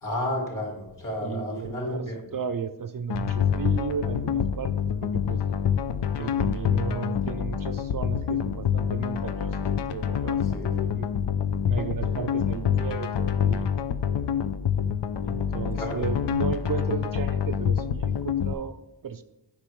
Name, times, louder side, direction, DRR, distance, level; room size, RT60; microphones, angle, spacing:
voice 1, 0.0-2.2 10.5-10.9 15.8-16.0, left 1 dB, 50° left, -3 dB, 2.5 m, -31 dB
voice 2, 1.2-4.7 5.0-5.4 6.2-10.6 10.9-11.1 11.7-13.7 15.2-19.2, right 6 dB, 55° right, 9 dB, 0.5 m, -34 dB
sound 1, 3.1-18.5, left 8 dB, 80° left, 0.5 m, -26 dB
8.4 x 5.4 x 3.1 m, 0.92 s
wide cardioid pair, 60°, 41 cm